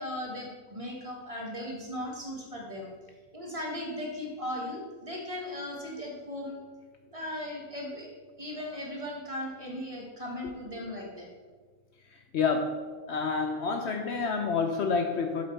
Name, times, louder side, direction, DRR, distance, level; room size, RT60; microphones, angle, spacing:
voice 1, 0.0-2.9 3.3-6.6 7.0-8.1 8.4-11.3, left 1 dB, 25° right, -1 dB, 1.6 m, -37 dB
voice 2, 12.3-12.8 13.1-15.4, left 5 dB, 60° left, 5 dB, 0.8 m, -28 dB
8.2 x 7.5 x 4.5 m, 1.5 s
omnidirectional pair, 1.4 m